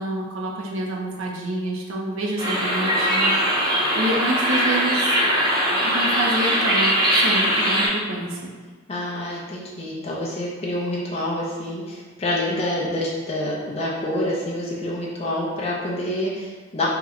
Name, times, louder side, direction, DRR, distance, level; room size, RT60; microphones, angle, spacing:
voice 1, 0.0-5.6 5.8-8.5, right 1 dB, 70° right, -2 dB, 0.5 m, -28 dB
sound 1, 2.4-7.9, equal, 20° right, 0.7 m, -21 dB
voice 2, 8.9-16.9, left 1 dB, 30° left, -4 dB, 0.4 m, -27 dB
2.9 x 2.1 x 3.6 m, 1.5 s
head